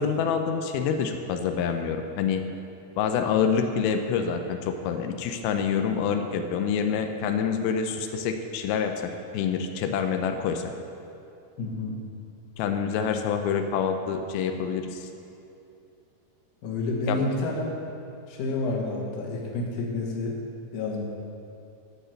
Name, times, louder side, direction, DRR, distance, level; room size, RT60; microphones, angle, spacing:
voice 1, 0.0-2.4 3.0-10.7 12.6-15.1 17.1-17.3, left 6 dB, 85° left, 6 dB, 2.5 m, -27 dB
voice 2, 11.6-12.0 16.6-17.7 18.3-20.4 20.7-21.0, left 2 dB, 55° left, -2 dB, 2.1 m, -29 dB
12.5 x 5.0 x 7.6 m, 2.7 s
omnidirectional pair, 4.3 m